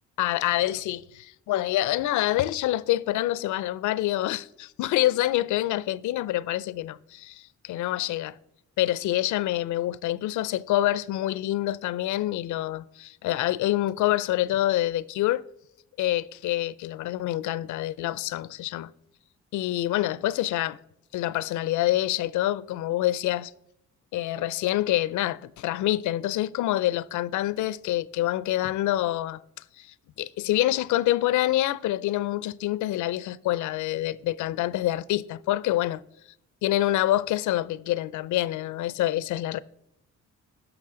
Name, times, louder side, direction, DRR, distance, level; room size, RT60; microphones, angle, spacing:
voice 1, 0.2-8.4 8.8-15.4 16.0-18.9 19.5-20.8 21.1-23.5 24.1-29.4 29.8-29.9 30.2-36.0 36.6-39.6, left 14 dB, 75° left, 0.5 m, -26 dB
11.0 x 6.1 x 3.8 m
cardioid pair, 90°, 30 cm